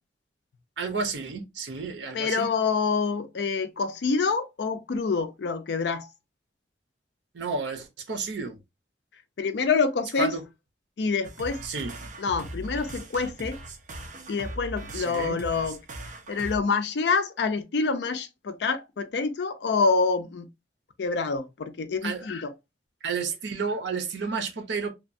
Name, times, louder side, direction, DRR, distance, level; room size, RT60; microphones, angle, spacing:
voice 1, 0.8-2.5 7.3-8.6 10.2-10.4 11.6-11.9 14.9-15.4 22.0-22.3 23.0-24.9, right 4 dB, 80° right, 0.7 m, -31 dB
voice 2, 2.1-6.1 9.4-10.3 11.0-11.6 12.2-13.6 14.3-15.8 16.3-20.5 21.0-22.5, left 4 dB, 65° left, 0.4 m, -26 dB
sound 1, 11.2-16.6, right 1 dB, 45° right, 0.6 m, -39 dB
2.9 x 2.2 x 2.5 m
head